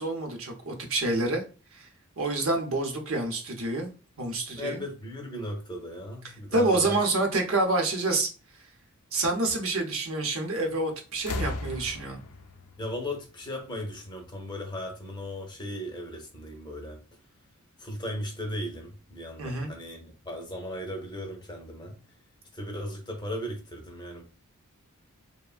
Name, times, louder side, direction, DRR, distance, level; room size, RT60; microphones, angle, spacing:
voice 1, 0.0-1.4 1.7-1.9 2.2-3.9 4.2-4.8 6.5-8.3 9.1-12.2 19.4-19.7, right 2 dB, 70° right, 0.7 m, -27 dB
voice 2, 4.5-7.0 12.8-17.0 17.8-22.0 22.5-24.2, left 1 dB, 20° left, 0.5 m, -37 dB
sound 1, 10.5-10.8 11.1-13.9 15.0-15.1, left 2 dB, 80° left, 0.4 m, -37 dB
3.2 x 2.1 x 2.3 m
head